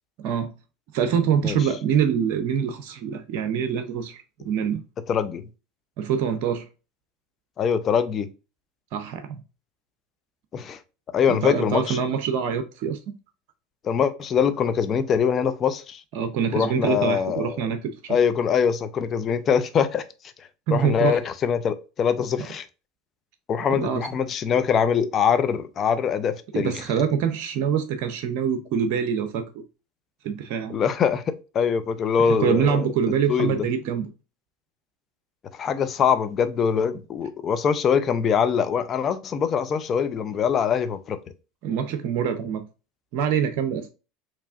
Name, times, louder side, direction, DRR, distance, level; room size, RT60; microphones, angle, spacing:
voice 1, 0.2-0.5 0.9-4.8 6.0-6.7 8.9-9.4 11.3-13.0 16.1-18.2 20.7-21.2 22.4-22.5 23.7-24.1 26.5-29.6 30.2-30.7 32.2-34.1 41.6-42.6 43.1-43.9, right 7 dB, 60° right, 0.6 m, -25 dB
voice 2, 5.1-5.4 7.6-8.3 10.5-10.8 11.1-12.0 13.8-16.0 16.5-17.6 18.1-20.0 20.7-22.6 23.5-26.7 30.7-32.9 33.3-33.6 35.6-41.2, left 7 dB, 40° left, 0.6 m, -23 dB
4.6 x 3.0 x 2.5 m
hypercardioid pair, 85°, 0 cm